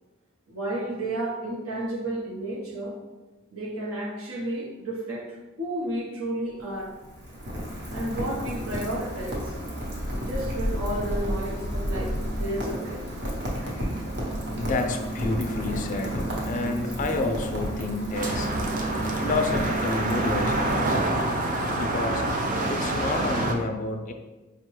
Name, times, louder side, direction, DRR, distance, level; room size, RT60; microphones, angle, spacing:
voice 1, 0.5-3.0 3.5-6.9 7.9-9.5 10.1-13.0, right 1 dB, 85° right, -2 dB, 0.8 m, -32 dB
Rain, 6.5-21.3, right 1 dB, 55° right, 0.9 m, -31 dB
voice 2, 14.5-18.5 19.1-21.2 21.7-22.2 22.7-24.1, left 3 dB, 40° left, 5 dB, 0.3 m, -30 dB
sound 1, 18.1-23.6, right 2 dB, 40° right, 0.4 m, -27 dB
4.8 x 2.2 x 3.0 m, 1.2 s
head